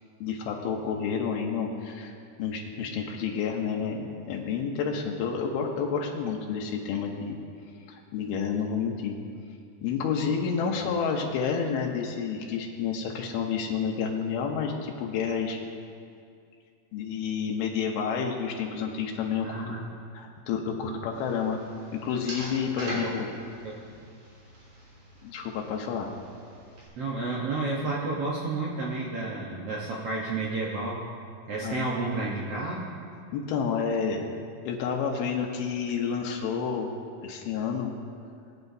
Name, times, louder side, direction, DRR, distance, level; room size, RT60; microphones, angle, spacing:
voice 1, 0.2-2.1 2.4-7.4 7.9-9.2 9.8-15.6 16.9-19.8 20.1-21.6 22.0-23.3 25.2-26.1 31.6-31.9 33.3-34.3 34.7-36.9 37.2-37.9, left 6 dB, 85° left, 0 dB, 2.8 m, -30 dB
voice 2, 19.4-19.8 20.9-21.0 22.8-23.1 23.6-23.8 27.0-31.0 31.5-32.8, right 3 dB, 80° right, -5 dB, 1.3 m, -31 dB
old tv button, 21.1-26.9, right 1 dB, 55° right, 4.8 m, -43 dB
20.5 x 8.8 x 2.7 m, 2.4 s
omnidirectional pair, 4.3 m